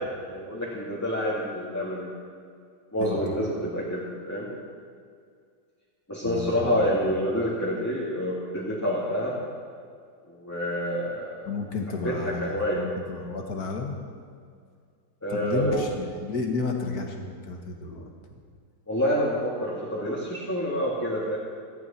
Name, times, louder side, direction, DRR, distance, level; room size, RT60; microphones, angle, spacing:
voice 1, 0.0-2.1 2.9-4.5 6.1-9.4 10.3-11.5 12.0-12.8 15.2-15.8 18.9-21.4, equal, 10° left, -7 dB, 2.4 m, -28 dB
voice 2, 3.0-3.5 6.2-7.2 11.5-14.0 15.3-18.1, left 3 dB, 55° left, 3 dB, 2.2 m, -32 dB
18.5 x 14.5 x 4.5 m, 2.2 s
omnidirectional pair, 2.0 m